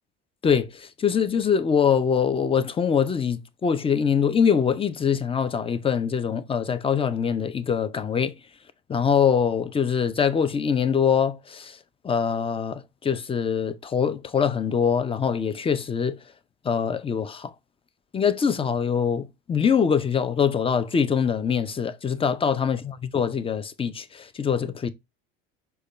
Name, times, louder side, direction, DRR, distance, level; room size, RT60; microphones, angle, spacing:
voice 1, 0.4-8.3 8.9-11.8 12.0-16.2 16.6-17.5 18.1-24.9, left 7 dB, 20° left, 0.5 m, -23 dB
4.9 x 2.3 x 4.0 m
hypercardioid pair, 80°, 30 cm